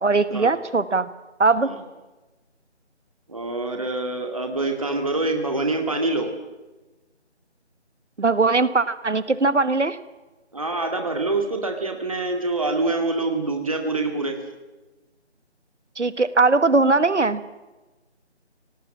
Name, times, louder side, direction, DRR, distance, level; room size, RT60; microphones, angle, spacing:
voice 1, 0.0-1.1 1.4-1.7 8.2-10.0 16.0-17.4, right 3 dB, 85° right, 14 dB, 1.5 m, -20 dB
voice 2, 3.3-6.3 10.5-14.4, right 2 dB, 30° right, 4 dB, 2.1 m, -25 dB
24.5 x 18.5 x 7.4 m, 1.1 s
figure-of-eight pair, 175°, 35 cm